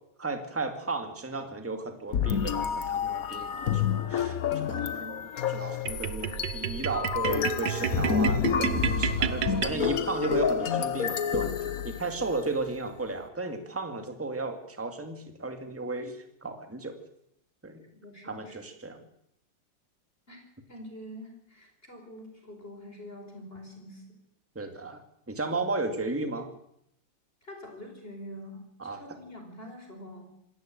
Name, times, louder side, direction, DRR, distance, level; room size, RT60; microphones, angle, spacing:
voice 1, 0.2-5.2 5.5-8.7 9.0-16.9 17.6-17.8 18.2-19.0 24.5-25.0 25.3-26.5 28.8-29.0, right 3 dB, 5° right, 6 dB, 2.2 m, -34 dB
sound 1, 2.1-12.4, left 8 dB, 50° left, 1.1 m, -29 dB
sound 2, 5.9-10.3, right 9 dB, 60° right, 1.5 m, -31 dB
voice 2, 17.9-18.6 20.3-20.4 20.7-24.2 27.4-30.2, left 1 dB, 25° left, 3 dB, 5.0 m, -45 dB
27.0 x 13.5 x 9.1 m, 0.75 s
omnidirectional pair, 2.4 m